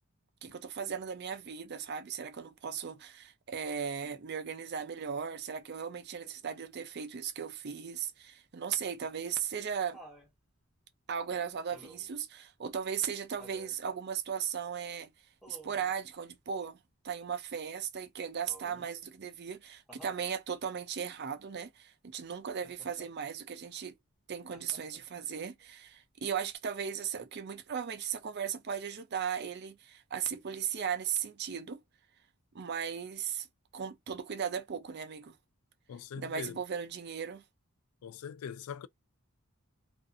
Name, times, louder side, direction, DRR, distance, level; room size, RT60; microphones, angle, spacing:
voice 1, 0.4-10.0 11.1-15.1 15.5-16.8 17.0-23.9 24.3-31.8 32.5-33.5 33.7-35.4 36.2-37.4, right 7 dB, 50° right, 0.5 m, -37 dB
Laughter, 9.0-10.3 11.7-12.2 13.4-13.8 15.4-15.9 18.5-19.0 19.9-20.3 22.6-23.1 24.5-25.1 26.5-26.6, equal, ahead, 0.8 m, -54 dB
voice 2, 35.9-36.5 38.0-38.9, left 7 dB, 80° left, 0.3 m, -42 dB
2.6 x 2.4 x 2.5 m
head